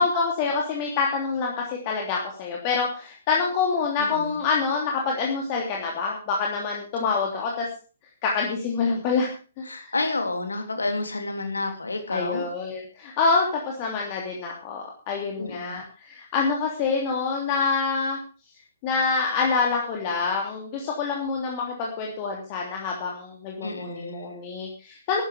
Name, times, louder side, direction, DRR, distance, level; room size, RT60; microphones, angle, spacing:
voice 1, 0.0-7.7 8.2-9.3 9.6-9.9 12.1-18.2 18.8-25.2, left 4 dB, 30° left, -1 dB, 3.1 m, -26 dB
voice 2, 4.0-4.4 9.7-12.5 15.4-15.8 23.6-24.3, left 2 dB, 75° left, 6 dB, 3.5 m, -30 dB
13.5 x 11.5 x 5.2 m, 0.36 s
figure-of-eight pair, 125°, 0 cm